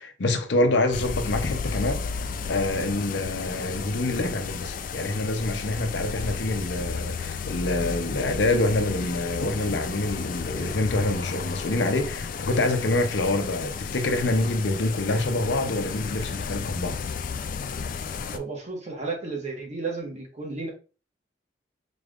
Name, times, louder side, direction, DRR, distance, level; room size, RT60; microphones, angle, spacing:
voice 1, 0.0-2.2 2.5-17.0, left 2 dB, 80° left, 0.7 m, -26 dB
sound 1, 0.9-18.4, left 5 dB, 50° left, 0.4 m, -33 dB
voice 2, 18.3-20.7, right 3 dB, 40° right, 1.4 m, -33 dB
4.1 x 3.5 x 2.4 m
head